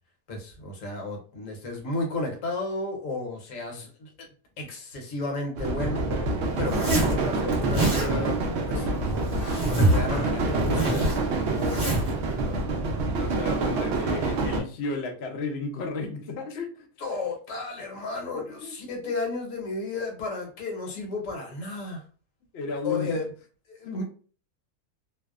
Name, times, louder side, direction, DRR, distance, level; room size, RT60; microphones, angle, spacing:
voice 1, 0.3-4.1 4.6-6.1 6.6-9.0 9.5-13.7 17.0-22.0 22.8-23.2 23.7-24.0, left 2 dB, 60° left, 1.1 m, -33 dB
sound 1, 5.6-14.6, right 3 dB, 70° right, 0.6 m, -27 dB
sound 2, 5.8-10.9, equal, 45° left, 0.8 m, -37 dB
Zipper (clothing), 6.6-7.2 7.5-8.1 8.9-10.1 10.4-12.1, right 1 dB, 10° right, 0.9 m, -26 dB
voice 2, 13.0-16.9 18.3-18.7 22.5-23.1 23.9-24.0, left 3 dB, 80° left, 0.5 m, -33 dB
2.6 x 2.0 x 2.3 m
omnidirectional pair, 1.6 m